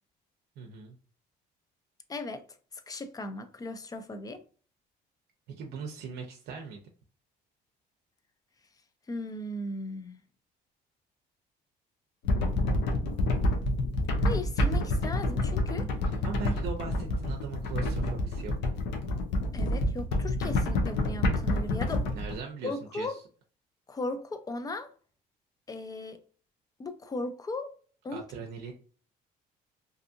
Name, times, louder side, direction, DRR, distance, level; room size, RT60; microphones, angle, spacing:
voice 1, 0.6-1.0 5.5-6.8 16.1-18.7 22.1-23.2 28.1-28.7, right 5 dB, 80° right, 0.5 m, -40 dB
voice 2, 2.1-2.5 2.9-4.4 9.1-10.2 14.2-15.9 19.5-22.1 22.6-23.2 23.9-24.9 25.7-26.2 26.8-27.8 28.0-28.2, left 2 dB, 20° left, 0.4 m, -37 dB
sound 1, 12.2-22.3, left 1 dB, 85° left, 0.6 m, -28 dB
2.6 x 2.5 x 2.5 m
cardioid pair, 110°, 17 cm